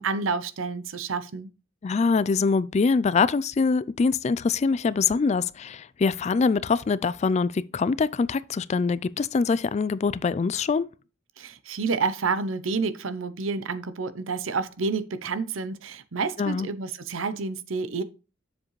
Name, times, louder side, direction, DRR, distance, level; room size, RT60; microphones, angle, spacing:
voice 1, 0.0-1.5 11.4-18.0, right 4 dB, 85° right, 0.7 m, -29 dB
voice 2, 1.8-10.9 16.4-16.7, left 4 dB, 35° left, 0.3 m, -24 dB
7.4 x 7.3 x 3.1 m
head